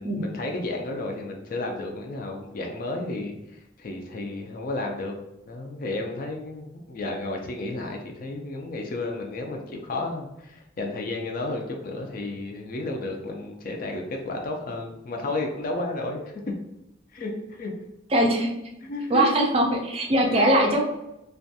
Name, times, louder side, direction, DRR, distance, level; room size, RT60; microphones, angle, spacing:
voice 1, 0.0-3.3 3.8-5.1 5.5-16.2 17.1-17.7 18.8-19.4 20.3-20.5, left 2 dB, 45° left, 2 dB, 0.4 m, -32 dB
voice 2, 18.1-18.5 19.1-19.7 19.9-20.8, right 1 dB, 30° right, 1 dB, 0.4 m, -21 dB
2.4 x 2.2 x 2.6 m, 0.89 s
head